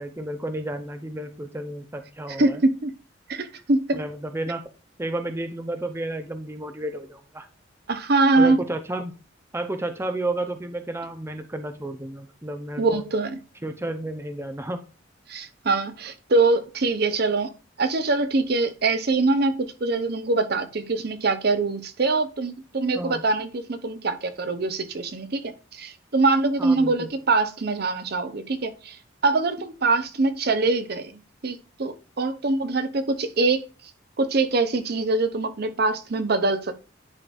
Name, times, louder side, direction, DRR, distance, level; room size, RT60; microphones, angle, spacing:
voice 1, 0.0-2.6 3.9-4.7 5.0-7.5 8.4-9.1 9.5-13.0 13.6-14.8 22.9-23.2 26.6-27.1, right 1 dB, 15° right, 0.5 m, -31 dB
voice 2, 2.4-2.9 3.3-4.0 7.9-8.6 12.8-13.3 15.3-31.1 31.4-33.6 34.2-36.8, right 3 dB, 55° right, 0.7 m, -23 dB
10.5 x 3.8 x 2.5 m
head